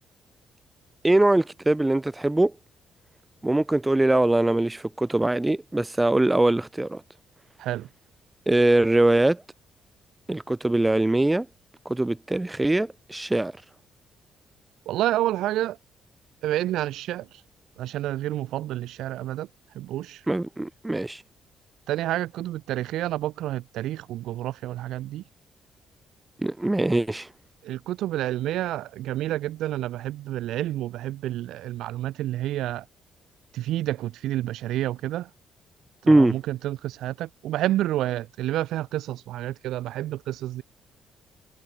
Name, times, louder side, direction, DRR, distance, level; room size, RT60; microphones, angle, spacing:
voice 1, 1.0-2.5 3.4-7.0 8.5-9.4 10.3-11.5 11.9-13.5 20.3-21.2 26.4-27.3 36.1-36.3, right 2 dB, 15° right, 0.3 m, -22 dB
voice 2, 14.9-15.8 16.4-17.4 17.8-19.5 19.7-20.2 21.9-25.2 27.6-32.8 33.5-35.3 36.0-40.6, right 14 dB, 85° right, 1.4 m, -29 dB
cardioid pair, 90°, 0 cm